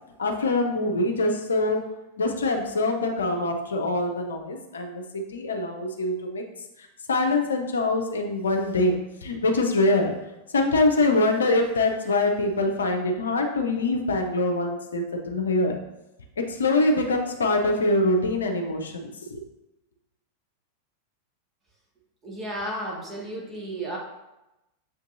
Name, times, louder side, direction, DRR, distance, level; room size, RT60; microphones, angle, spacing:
voice 1, 0.2-1.8 2.2-6.4 6.8-10.1 10.5-15.8 16.4-19.4, left 2 dB, 70° left, 3 dB, 0.6 m, -24 dB
voice 2, 22.2-24.0, right 1 dB, 20° right, -2 dB, 1.0 m, -33 dB
6.9 x 2.6 x 2.6 m, 0.97 s
figure-of-eight pair, 90°, 0 cm